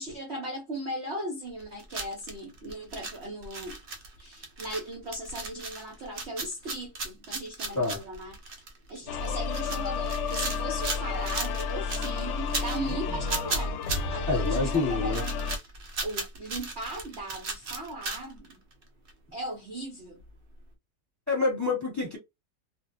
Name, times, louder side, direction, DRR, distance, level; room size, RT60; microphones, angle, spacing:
voice 1, 0.0-3.8 4.2-8.6 8.9-13.8 14.1-15.5 16.0-18.6 19.3-20.2, right 1 dB, 50° right, 0.8 m, -38 dB
sound 1, 1.5-18.8 19.1-19.2 20.2-20.3, right 3 dB, 80° right, 0.5 m, -36 dB
sound 2, 9.1-15.6, left 5 dB, 75° left, 1.1 m, -31 dB
voice 2, 14.3-15.2 21.3-22.2, left 3 dB, 10° left, 1.2 m, -27 dB
2.6 x 2.6 x 2.6 m
omnidirectional pair, 2.0 m